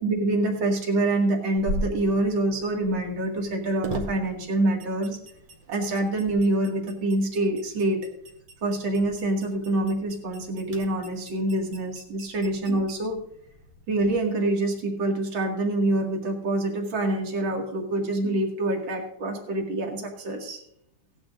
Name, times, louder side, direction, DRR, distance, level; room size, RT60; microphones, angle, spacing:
voice 1, 0.0-5.2 5.7-8.1 8.6-13.2 13.9-20.6, right 2 dB, 65° right, 1 dB, 2.8 m, -26 dB
sound 1, 1.6-13.8, right 1 dB, 90° right, 2.8 m, -40 dB
17.5 x 11.0 x 2.5 m, 0.73 s
omnidirectional pair, 2.3 m